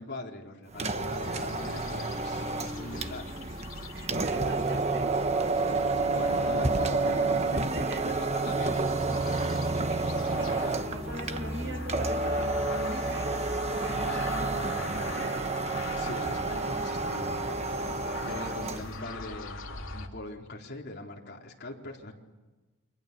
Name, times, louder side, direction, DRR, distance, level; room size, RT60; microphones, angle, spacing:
voice 1, 0.0-3.3 6.1-7.6 8.0-9.7 10.1-10.3 14.0-14.2 15.9-22.1, left 2 dB, 50° left, 0 dB, 3.9 m, -42 dB
sound 1, 0.7-18.9, right 3 dB, 30° right, 1.2 m, -30 dB
sound 2, 1.0-20.1, left 3 dB, 70° left, 2.9 m, -42 dB
sound 3, 2.0-12.2 12.7-15.5, left 1 dB, 5° right, 2.6 m, -48 dB
voice 2, 3.9-5.1 7.5-8.1 9.9-15.5 18.7-18.8, right 1 dB, 60° right, 2 dB, 6.1 m, -41 dB
29.0 x 25.0 x 6.9 m, 1.2 s
head